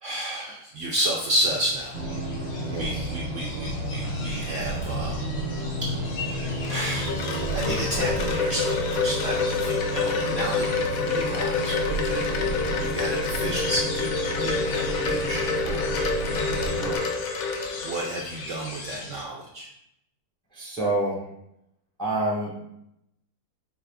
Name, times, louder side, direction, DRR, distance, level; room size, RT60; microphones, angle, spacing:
voice 1, 0.0-2.4 2.8-5.2 6.0-6.1 6.7-12.3 12.8-15.9 17.8-19.7, right 1 dB, 70° right, -2 dB, 0.7 m, -31 dB
sound 1, 1.3-19.2, left 3 dB, 85° left, 1.3 m, -41 dB
sound 2, 1.9-17.0, right 1 dB, 50° right, 1.1 m, -32 dB
voice 2, 2.7-3.1 10.0-10.3 16.7-17.0 20.5-21.2 22.0-22.6, right 2 dB, 5° left, -4 dB, 0.6 m, -28 dB
Wind chime, 6.2-18.4, left 4 dB, 70° left, 0.9 m, -28 dB
4.9 x 2.4 x 3.4 m, 0.80 s
omnidirectional pair, 1.7 m